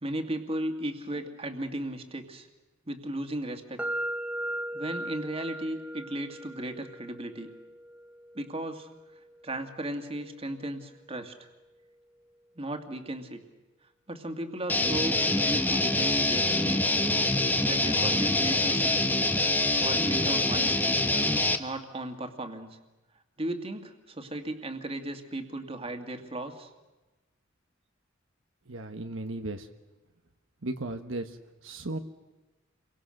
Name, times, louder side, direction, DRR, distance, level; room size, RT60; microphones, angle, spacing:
voice 1, 0.0-2.5 2.9-3.8 4.7-7.5 8.3-8.9 9.4-11.3 12.6-13.4 14.1-16.9 17.6-19.2 19.8-21.0 21.6-22.8 23.4-26.7, right 1 dB, 30° right, 5 dB, 2.2 m, -36 dB
sound 1, 3.8-11.6, right 1 dB, 5° right, 0.7 m, -39 dB
Guitar, 14.7-21.6, left 2 dB, 10° left, 1.1 m, -25 dB
voice 2, 28.7-29.7 30.6-32.0, right 2 dB, 75° right, 6 dB, 1.3 m, -36 dB
30.0 x 23.5 x 6.6 m, 1.1 s
head